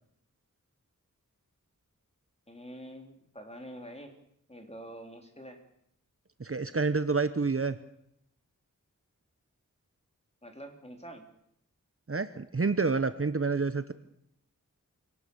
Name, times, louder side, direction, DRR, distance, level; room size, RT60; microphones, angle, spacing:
voice 1, 2.5-4.1 4.5-5.6 10.4-11.3, equal, 20° left, 4 dB, 3.4 m, -46 dB
voice 2, 6.4-7.8 12.1-13.9, right 4 dB, 45° right, 11 dB, 1.0 m, -28 dB
25.0 x 18.5 x 7.0 m, 0.74 s
wide cardioid pair, 60°, 32 cm